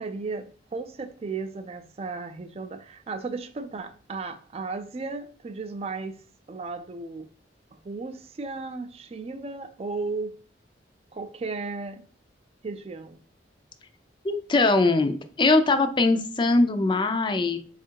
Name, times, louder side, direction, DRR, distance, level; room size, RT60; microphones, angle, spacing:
voice 1, 0.0-6.2 6.5-7.3 7.7-10.3 11.1-12.0 12.6-13.2, right 4 dB, 35° right, 0.4 m, -35 dB
voice 2, 14.2-17.6, left 3 dB, 25° left, 0.4 m, -21 dB
4.3 x 2.4 x 4.5 m
head